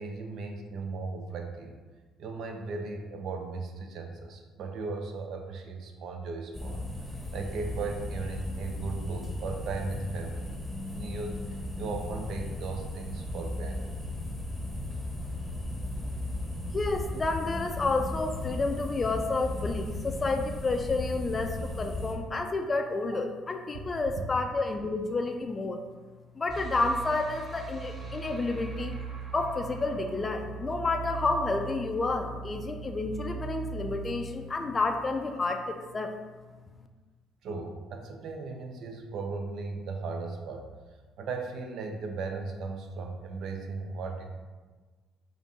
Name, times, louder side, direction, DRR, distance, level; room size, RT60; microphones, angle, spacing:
voice 1, 0.0-1.8 2.2-6.8 7.3-10.5 10.9-11.4 11.8-13.9 37.4-40.6 41.2-44.2, right 4 dB, 65° right, 4 dB, 0.5 m, -37 dB
sound 1, 6.5-22.1, left 1 dB, 5° left, 1.0 m, -36 dB
voice 2, 16.7-25.8 26.4-28.9 29.3-36.1, left 3 dB, 30° left, 5 dB, 0.3 m, -30 dB
sound 2, 26.5-35.6, right 4 dB, 30° right, 0.8 m, -40 dB
5.0 x 2.5 x 2.7 m, 1.4 s
supercardioid pair, 75°, 0 cm